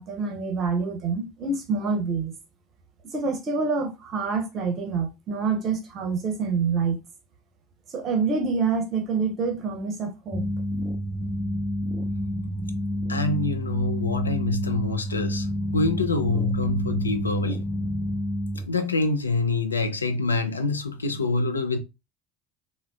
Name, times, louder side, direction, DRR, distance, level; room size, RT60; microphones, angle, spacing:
voice 1, 0.0-2.3 3.0-7.0 7.9-10.4, right 4 dB, 45° right, 0.7 m, -27 dB
sound 1, 10.3-18.7, equal, 5° right, 0.4 m, -29 dB
voice 2, 13.1-15.5 15.7-17.7 18.7-21.8, left 3 dB, 85° left, 0.4 m, -26 dB
3.4 x 2.1 x 2.3 m
figure-of-eight pair, 60°, 0 cm